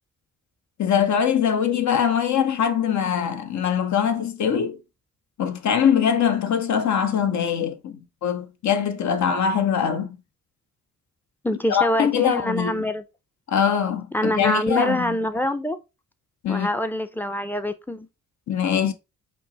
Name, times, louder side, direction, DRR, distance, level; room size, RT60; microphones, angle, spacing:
voice 1, 0.8-4.8 5.4-10.2 11.7-12.8 13.5-15.2 16.4-16.7 18.5-18.9, left 8 dB, 60° left, 0.8 m, -22 dB
voice 2, 11.4-13.0 14.1-15.8 16.5-18.1, left 1 dB, 5° left, 0.6 m, -25 dB
5.4 x 2.0 x 4.0 m
cardioid pair, 75°, 32 cm